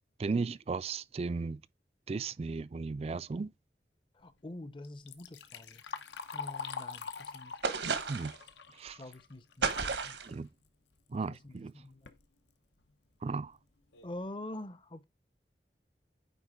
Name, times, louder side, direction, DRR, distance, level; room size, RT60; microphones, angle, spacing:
voice 1, 0.2-1.6 2.1-3.5 8.1-8.3 8.8-9.0 10.3-10.5 11.1-11.7 13.2-13.6, right 4 dB, 35° right, 0.3 m, -35 dB
voice 2, 4.2-5.8 6.3-7.5 9.0-10.2 11.1-12.1 14.0-15.0, left 1 dB, 30° left, 0.6 m, -46 dB
Liquid, 4.8-10.0 10.4-10.5 11.3-11.4 11.9-12.2 12.8-12.9 13.4-13.5 13.9-14.2, left 5 dB, 90° left, 0.9 m, -44 dB
sound 1, 7.6-8.4 9.6-10.3, right 5 dB, 85° right, 1.2 m, -32 dB
9.2 x 3.7 x 3.6 m
head